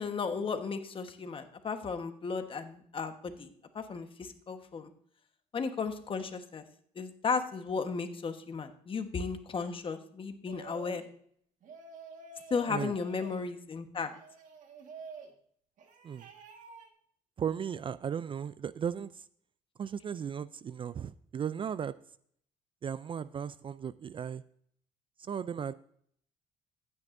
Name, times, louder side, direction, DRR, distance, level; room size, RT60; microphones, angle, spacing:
voice 1, 0.0-3.5 3.7-4.9 5.5-6.6 6.9-11.0 12.5-14.1, left 5 dB, 35° left, 7 dB, 1.3 m, -35 dB
goblins commenting boss-speech, 10.5-11.1 11.6-13.4 14.0-15.3 15.8-16.9, right 5 dB, 60° right, 1.7 m, -49 dB
voice 2, 17.4-19.2 19.8-21.9 22.8-24.4 25.2-25.7, right 8 dB, 35° right, 16 dB, 0.4 m, -36 dB
15.0 x 9.4 x 2.6 m, 0.63 s
cardioid pair, 90°, 15 cm